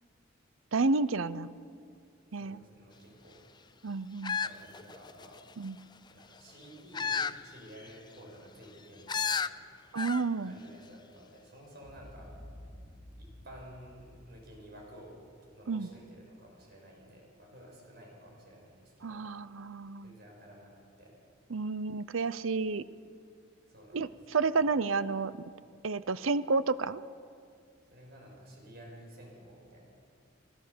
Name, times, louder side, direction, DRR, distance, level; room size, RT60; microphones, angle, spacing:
voice 1, 0.7-1.5 2.3-2.6 3.8-4.4 5.6-5.8 9.9-10.5 15.7-15.9 19.0-20.1 21.5-22.8 23.9-25.3 25.8-27.0, right 4 dB, 90° right, 16 dB, 0.7 m, -30 dB
voice 2, 2.3-3.7 4.4-5.4 6.1-9.4 10.4-12.3 13.1-19.2 20.0-21.1 23.6-24.6 27.8-29.9, equal, 55° right, -1 dB, 6.0 m, -52 dB
sound 1, 4.2-5.4 6.9-7.4 7.8-7.9 9.1-9.5 10.0-10.3 10.6-10.7, left 6 dB, 20° left, 0.5 m, -32 dB
Boom, 11.8-16.1, equal, 15° right, 4.0 m, -52 dB
26.0 x 16.5 x 6.8 m, 2.3 s
head